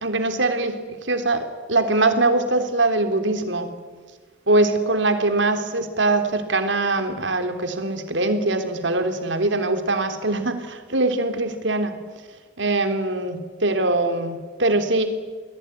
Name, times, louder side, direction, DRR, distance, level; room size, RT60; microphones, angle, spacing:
voice 1, 0.0-3.7 4.5-12.0 12.6-15.1, right 2 dB, 75° right, 7 dB, 3.4 m, -22 dB
29.0 x 20.5 x 10.0 m, 1.4 s
head